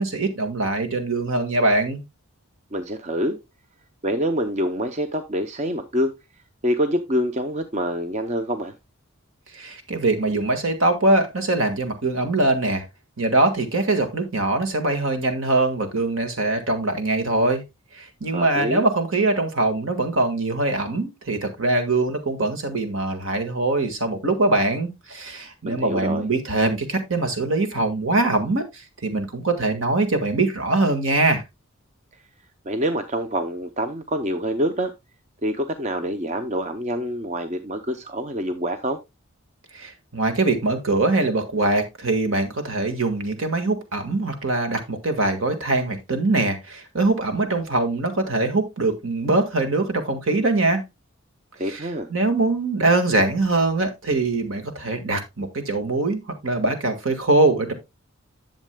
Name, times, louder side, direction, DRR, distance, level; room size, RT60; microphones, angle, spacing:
voice 1, 0.0-2.0 9.5-12.8 13.2-17.6 17.9-31.4 39.7-50.8 51.7-57.7, right 2 dB, 65° right, 1.7 m, -22 dB
voice 2, 2.7-3.4 4.0-6.2 6.6-8.7 18.3-18.9 25.6-26.2 32.7-34.9 35.4-39.0 51.6-52.1, equal, 30° right, 0.6 m, -26 dB
11.0 x 7.4 x 2.2 m
head